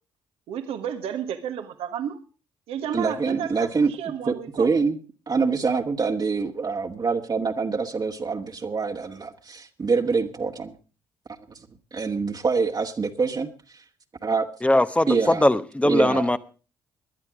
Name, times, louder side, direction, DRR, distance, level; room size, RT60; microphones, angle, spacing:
voice 1, 0.5-2.2 2.7-3.7 4.0-4.7, right 8 dB, 70° right, 1.4 m, -32 dB
voice 2, 2.9-3.9 4.3-5.0 5.3-10.7 11.9-13.8 14.2-14.5 15.1-15.5 15.8-16.3, right 4 dB, 40° right, 1.7 m, -25 dB
voice 3, 14.6-16.4, left 1 dB, 10° left, 1.0 m, -20 dB
18.5 x 11.0 x 4.9 m
hypercardioid pair, 45°, 10 cm